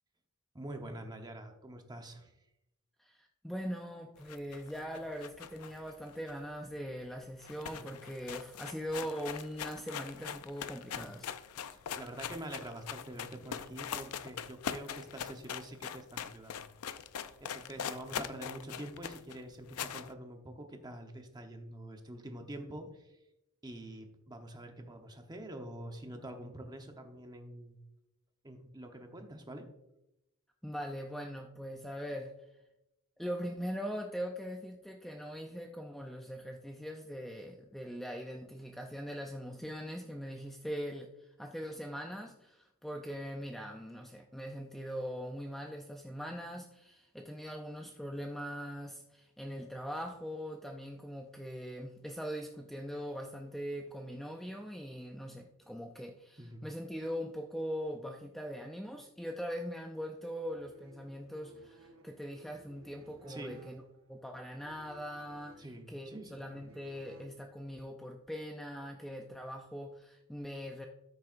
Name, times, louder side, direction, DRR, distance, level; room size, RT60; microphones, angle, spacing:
voice 1, 0.5-2.3 7.8-7.9 10.9-11.1 11.7-16.7 17.4-23.1 23.6-27.8 28.4-29.7 56.4-56.6 63.3-63.6 65.6-66.5, right 1 dB, 20° right, 5 dB, 1.0 m, -46 dB
voice 2, 3.0-11.3 30.6-32.3 33.2-63.8 64.1-70.9, equal, ahead, 2 dB, 0.5 m, -41 dB
sound 1, 4.2-6.8 7.1-7.2 7.4-20.1, left 8 dB, 85° left, 0.5 m, -42 dB
sound 2, 60.3-67.8, right 1 dB, 65° right, 1.0 m, -59 dB
13.0 x 6.7 x 2.6 m, 0.90 s
head